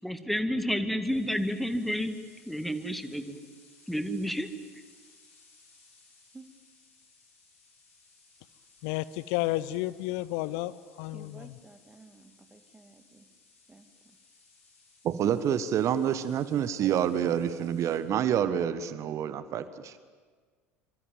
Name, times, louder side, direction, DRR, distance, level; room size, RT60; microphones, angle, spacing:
voice 1, 0.0-2.2 2.5-3.4 3.9-4.5, equal, ahead, 2.1 m, -30 dB
sound 1, 1.0-18.0, left 3 dB, 75° left, 7.6 m, -61 dB
voice 2, 8.8-11.5, left 17 dB, 60° left, 0.7 m, -32 dB
voice 3, 11.1-13.3 13.7-14.2, right 3 dB, 15° right, 2.4 m, -53 dB
voice 4, 15.0-20.0, right 9 dB, 40° right, 1.4 m, -28 dB
25.5 x 25.0 x 9.2 m
figure-of-eight pair, 70°, 8 cm